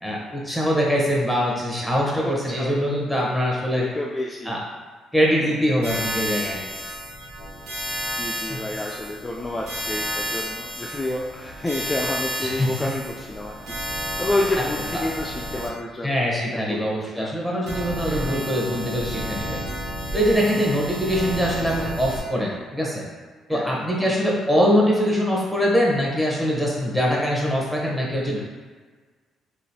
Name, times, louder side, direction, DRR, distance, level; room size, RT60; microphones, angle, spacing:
voice 1, 0.0-3.8 4.5-4.6 5.1-6.6 8.5-8.6 12.4-12.7 16.0-19.6 20.1-23.0 23.5-28.4, equal, 5° right, -3 dB, 0.9 m, -23 dB
voice 2, 2.2-2.7 3.8-4.5 5.4-5.8 8.2-13.8 14.2-16.1 16.5-17.3 18.1-18.5 20.6-20.7 23.5-24.2, left 1 dB, 20° left, -2 dB, 0.3 m, -30 dB
sound 1, 5.8-15.7 17.7-22.2, equal, 75° right, 0.8 m, -31 dB
3.0 x 2.4 x 2.7 m, 1.4 s
supercardioid pair, 65°, 0 cm